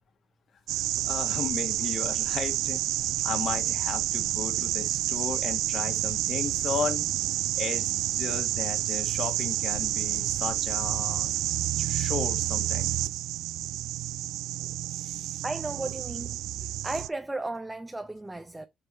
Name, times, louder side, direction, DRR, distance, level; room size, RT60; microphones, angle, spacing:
voice 1, 0.7-2.8 3.2-7.0 7.5-11.3 11.8-12.9 14.9-15.4, left 5 dB, 60° left, 1.5 m, -35 dB
sound 1, 0.7-17.1, right 14 dB, 90° right, 0.3 m, -29 dB
voice 2, 15.4-18.7, right 2 dB, 10° right, 0.6 m, -35 dB
6.7 x 2.9 x 5.3 m
cardioid pair, 90°, 0 cm